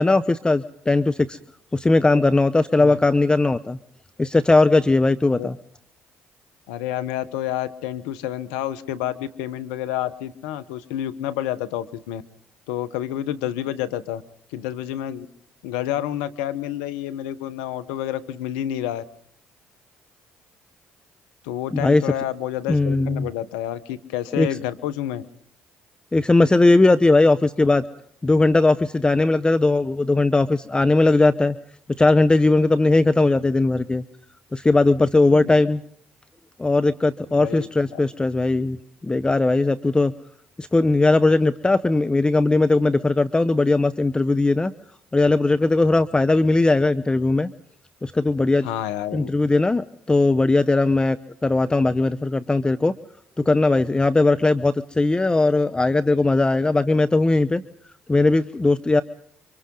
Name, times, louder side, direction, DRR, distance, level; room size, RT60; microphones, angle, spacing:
voice 1, 0.0-1.4 1.7-3.8 4.2-5.6 21.7-22.0 22.7-23.3 24.3-24.5 26.1-27.8 28.2-31.6 32.0-34.0 34.5-35.8 36.6-38.8 39.0-40.1 40.6-44.7 45.1-47.5 48.0-48.7 49.1-51.2 51.4-52.9 53.4-57.6 58.1-59.0, left 2 dB, 20° left, 13 dB, 0.8 m, -19 dB
voice 2, 6.7-12.2 12.7-14.2 14.5-15.3 15.6-19.0 21.4-25.2 37.3-38.0 48.6-49.3, left 12 dB, 85° left, 13 dB, 1.0 m, -29 dB
29.5 x 25.0 x 3.9 m, 0.65 s
hypercardioid pair, 60°, 5 cm